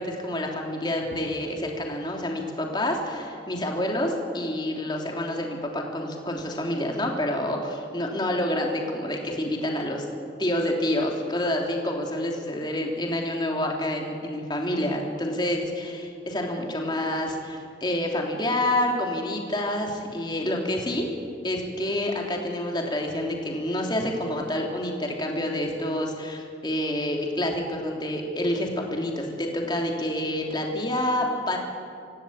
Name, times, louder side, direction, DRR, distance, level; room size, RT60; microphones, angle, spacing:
voice 1, 0.0-10.0 10.4-21.1 21.4-31.6, left 1 dB, 25° left, 0 dB, 3.2 m, -28 dB
25.5 x 16.0 x 8.8 m, 2.3 s
head